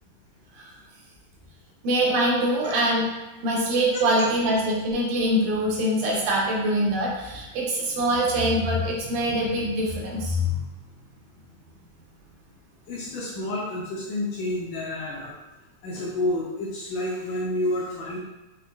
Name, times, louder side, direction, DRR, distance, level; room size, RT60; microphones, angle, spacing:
voice 1, 1.8-3.1 3.4-10.6, equal, 90° right, -3 dB, 2.3 m, -24 dB
voice 2, 12.9-15.3 15.8-18.2, left 1 dB, 75° left, -5 dB, 1.7 m, -29 dB
5.8 x 2.2 x 2.2 m, 1.1 s
omnidirectional pair, 3.4 m